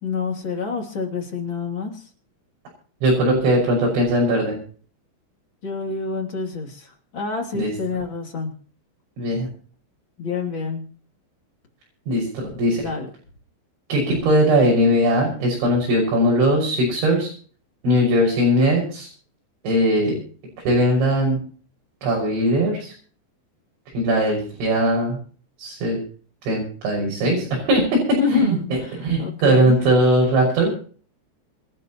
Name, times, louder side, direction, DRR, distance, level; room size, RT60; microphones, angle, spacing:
voice 1, 0.0-2.1 5.6-8.5 10.2-10.9 12.8-13.1 28.2-29.7, left 4 dB, 30° left, 1 dB, 3.1 m, -27 dB
voice 2, 3.0-4.5 7.5-7.7 9.2-9.5 12.1-12.8 13.9-17.3 17.8-19.1 19.6-20.2 20.6-21.4 22.0-22.9 23.9-25.2 25.6-26.0 26.4-30.7, equal, 75° right, -1 dB, 8.4 m, -19 dB
27.5 x 11.5 x 3.0 m, 0.43 s
omnidirectional pair, 5.4 m